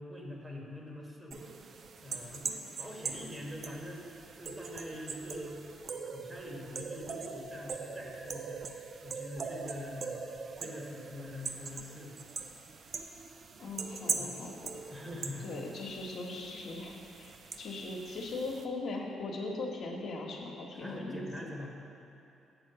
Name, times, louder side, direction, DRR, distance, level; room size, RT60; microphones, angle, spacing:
voice 1, 0.0-1.4 2.0-2.5 2.8-4.1 4.3-5.6 6.1-8.6 9.0-10.2 10.6-12.2 14.2-14.4 14.9-15.6 20.7-21.8, left 1 dB, 25° right, -1 dB, 1.3 m, -44 dB
sound 1, 1.3-18.6, right 5 dB, 55° right, 0.5 m, -42 dB
voice 2, 13.6-14.6 15.4-21.5, left 2 dB, 65° left, -1 dB, 1.2 m, -39 dB
7.6 x 4.4 x 6.7 m, 2.8 s
cardioid pair, 90°, 0 cm